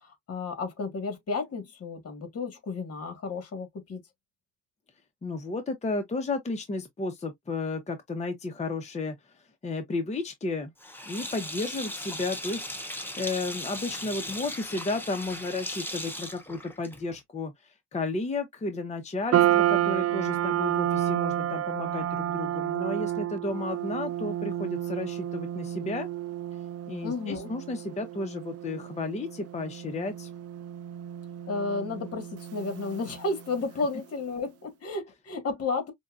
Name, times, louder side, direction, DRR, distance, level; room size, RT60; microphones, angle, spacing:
voice 1, 0.0-4.0 27.0-27.5 31.5-35.9, left 3 dB, 55° left, 1.6 m, -32 dB
voice 2, 5.2-10.7 11.1-26.1 26.9-30.3, left 3 dB, 25° left, 0.7 m, -33 dB
Sink (filling or washing), 10.8-17.2, left 1 dB, 5° left, 1.0 m, -37 dB
sound 1, 19.3-33.7, right 12 dB, 55° right, 0.5 m, -30 dB
5.2 x 2.3 x 2.4 m
cardioid pair, 90°, 30 cm